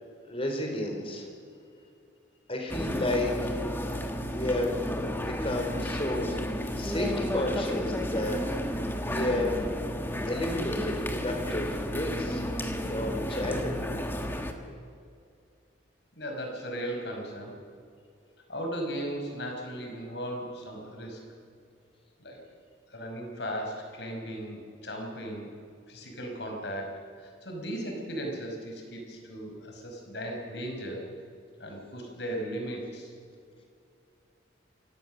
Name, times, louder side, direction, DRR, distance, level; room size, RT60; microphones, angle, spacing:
voice 1, 0.3-1.3 2.5-3.6 4.2-4.8 5.4-6.4 6.8-8.4 9.0-9.6 10.3-12.4 12.9-13.8, left 1 dB, 30° left, 2 dB, 4.0 m, -31 dB
sound 1, 2.7-14.5, equal, 10° left, 1.5 m, -32 dB
voice 2, 16.2-17.5 18.5-21.2 22.2-22.4 22.9-25.5 25.9-31.0 31.6-33.1, equal, 60° left, 2 dB, 5.2 m, -37 dB
27.5 x 17.0 x 6.6 m, 2.3 s
head